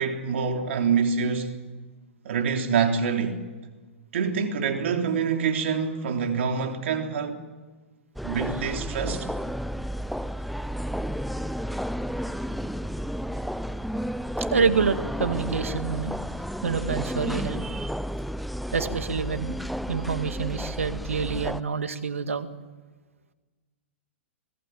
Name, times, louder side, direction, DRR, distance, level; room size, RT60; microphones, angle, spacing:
voice 1, 0.0-1.6 2.2-3.4 4.1-7.4 8.2-9.3, right 6 dB, 65° right, 3.5 m, -26 dB
sound 1, 8.2-21.6, equal, ahead, 0.8 m, -32 dB
voice 2, 14.4-16.2 16.6-17.9 18.7-19.6 19.9-22.5, right 5 dB, 85° right, 1.9 m, -27 dB
25.5 x 18.5 x 9.2 m
hypercardioid pair, 115°, 7 cm